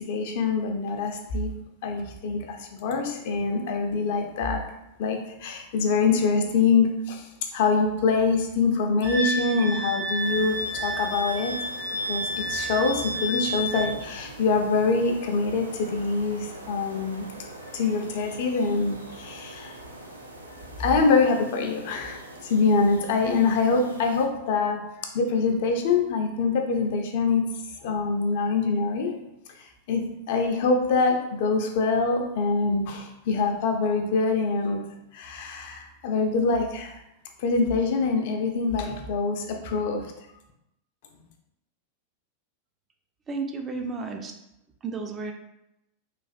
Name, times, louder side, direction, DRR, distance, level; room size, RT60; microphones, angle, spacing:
voice 1, 0.0-1.5 1.8-4.7 5.0-11.5 12.0-17.3 17.7-19.8 20.8-27.4 27.8-29.1 29.6-34.8 35.1-37.0 37.4-40.1, left 4 dB, 50° left, 4 dB, 0.4 m, -25 dB
Wind instrument woodwind instrument, 9.0-13.9, equal, 65° right, 1.0 m, -30 dB
sound 1, 10.2-24.3, right 2 dB, 85° right, 0.5 m, -43 dB
voice 2, 43.3-44.3 44.8-45.3, right 4 dB, 20° right, 4 dB, 0.3 m, -32 dB
3.2 x 2.4 x 2.4 m, 0.87 s
figure-of-eight pair, 90°, 0 cm